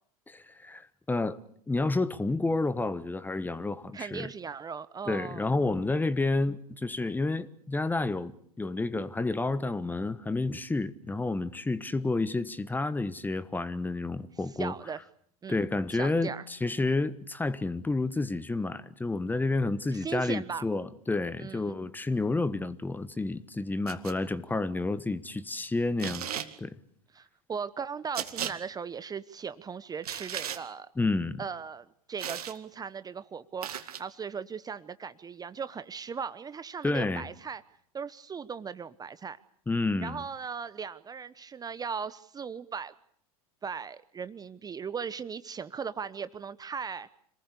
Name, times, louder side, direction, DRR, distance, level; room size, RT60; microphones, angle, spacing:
voice 1, 0.3-1.4 1.7-4.3 5.1-14.7 15.5-26.3 26.6-26.7 31.0-31.4 36.8-37.2 39.7-40.2, left 2 dB, 10° left, 1.2 m, -30 dB
voice 2, 3.9-5.5 14.6-15.0 15.4-16.4 19.9-20.6 21.4-21.8 27.1-30.9 31.4-37.6 37.9-39.4 40.0-42.9 43.6-47.1, right 6 dB, 20° right, 1.0 m, -38 dB
sound 1, 23.9-24.2 26.0-26.5 28.1-28.5 30.0-30.6 32.2-32.6 33.6-34.0, right 9 dB, 75° right, 2.2 m, -35 dB
26.5 x 20.0 x 8.3 m
hypercardioid pair, 90°, 20 cm